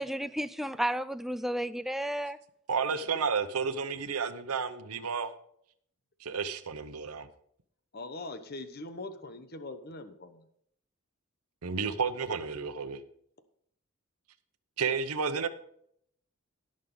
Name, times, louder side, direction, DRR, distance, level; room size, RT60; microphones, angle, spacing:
voice 1, 0.0-2.4, right 1 dB, ahead, 12 dB, 0.4 m, -32 dB
voice 2, 2.7-5.3 6.2-7.3 11.6-13.0 14.8-15.5, right 5 dB, 85° right, 9 dB, 0.8 m, -31 dB
voice 3, 7.9-10.5, left 2 dB, 45° left, 9 dB, 1.0 m, -42 dB
18.0 x 6.5 x 3.9 m, 0.68 s
head